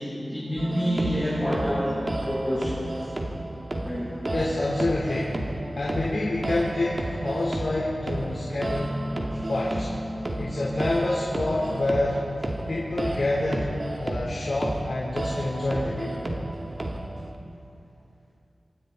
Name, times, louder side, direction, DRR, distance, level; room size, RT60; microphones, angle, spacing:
voice 1, 0.0-3.0 3.8-4.2 4.5-4.7 9.4-9.5, equal, ahead, -10 dB, 7.5 m, -28 dB
sound 1, 0.6-17.3, right 1 dB, 40° right, 2.6 m, -32 dB
voice 2, 4.3-9.0 9.5-9.9 10.4-12.3 12.7-13.7 14.0-16.2, left 2 dB, 65° left, -6 dB, 3.9 m, -27 dB
26.5 x 26.0 x 4.3 m, 2.5 s
wide cardioid pair, 70°, 0 cm